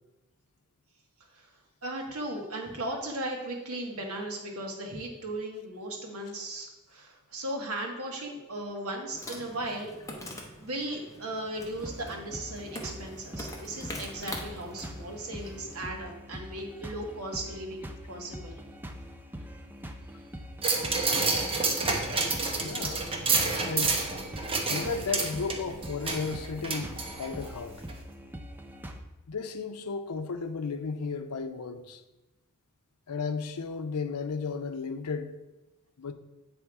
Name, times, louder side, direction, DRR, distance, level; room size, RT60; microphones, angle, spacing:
voice 1, 1.8-9.9 10.6-18.6, right 1 dB, 70° right, 1.4 m, -37 dB
Insect, 9.1-15.9, left 1 dB, 15° left, 0.9 m, -44 dB
sound 1, 11.8-29.0, equal, 10° right, 0.4 m, -43 dB
sound 2, 20.6-27.5 27.9-28.0, right 3 dB, 25° right, 0.9 m, -29 dB
voice 2, 22.6-23.1 23.7-24.0 24.7-27.9 29.3-32.0 33.1-35.3 36.0-36.1, left 4 dB, 90° left, 0.6 m, -34 dB
8.6 x 3.4 x 4.7 m
head